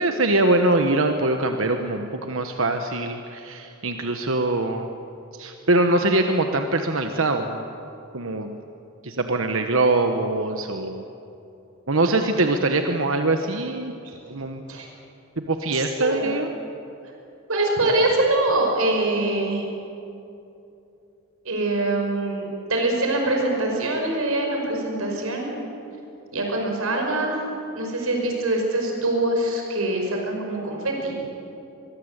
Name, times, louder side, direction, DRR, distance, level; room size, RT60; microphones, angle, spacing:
voice 1, 0.0-4.9 5.3-7.7 8.1-8.5 9.0-11.0 11.9-13.9 14.3-14.6 15.4-16.5, right 2 dB, 65° right, 5 dB, 1.3 m, -23 dB
voice 2, 15.7-16.3 17.5-19.6 21.5-25.5 26.3-27.4 27.8-31.2, right 2 dB, 80° right, 1 dB, 5.5 m, -24 dB
23.5 x 23.0 x 8.2 m, 2.8 s
head